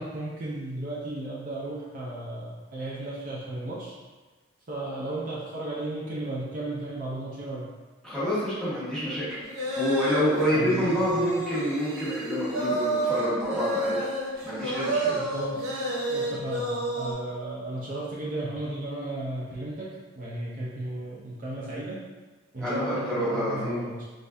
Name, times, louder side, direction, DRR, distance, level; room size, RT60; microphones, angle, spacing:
voice 1, 0.0-3.9 4.7-7.7 10.5-10.9 15.1-15.7 16.1-19.9 20.2-22.0 22.5-24.0, right 2 dB, 45° right, -6 dB, 0.6 m, -34 dB
voice 2, 8.0-9.4 9.7-14.0 14.4-15.1 22.6-23.8, equal, 5° left, -10 dB, 1.3 m, -28 dB
sound 1, 9.3-17.1, right 1 dB, 75° right, 0.9 m, -29 dB
3.8 x 3.3 x 2.6 m, 1.3 s
head